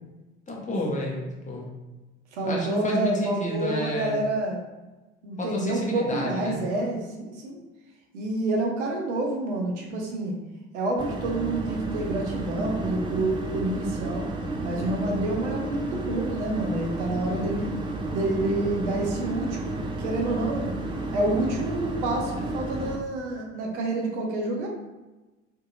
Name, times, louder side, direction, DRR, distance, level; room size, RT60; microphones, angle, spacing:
voice 1, 0.5-1.7 2.5-4.2 5.4-6.6, left 1 dB, 20° left, -3 dB, 0.8 m, -30 dB
voice 2, 2.3-4.6 5.2-7.6 8.1-10.4 10.7-14.3 14.6-17.8 18.1-20.7 21.1-24.7, right 2 dB, 75° right, 0 dB, 0.6 m, -28 dB
sound 1, 11.0-23.0, right 2 dB, 15° right, 0.4 m, -32 dB
2.7 x 2.6 x 2.5 m, 1.1 s
figure-of-eight pair, 55°, 35 cm